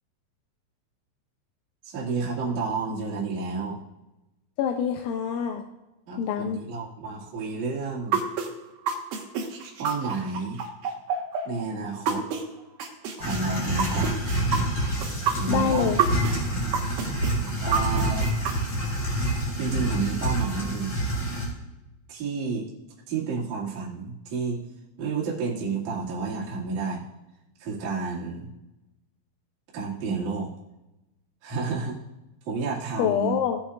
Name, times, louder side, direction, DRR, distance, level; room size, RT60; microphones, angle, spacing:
voice 1, 1.8-3.8 6.1-8.2 9.8-10.6 11.4-12.2 13.2-14.2 15.4-15.9 16.3-16.4 17.6-18.4 19.6-21.0 22.1-22.7 23.1-24.6 25.0-27.0 27.6-28.5 29.7-30.5 31.4-32.0 32.4-33.4, right 4 dB, 50° right, -7 dB, 3.0 m, -30 dB
voice 2, 4.6-5.6 6.2-6.6 15.5-16.0 33.0-33.6, left 8 dB, 85° left, 4 dB, 2.8 m, -25 dB
sound 1, 8.1-12.4 12.8-16.4 16.7-18.5, right 7 dB, 75° right, 2.1 m, -27 dB
sound 2, 13.2-21.5, right 1 dB, 30° left, 4.5 m, -27 dB
18.0 x 8.7 x 2.4 m, 0.98 s
omnidirectional pair, 5.8 m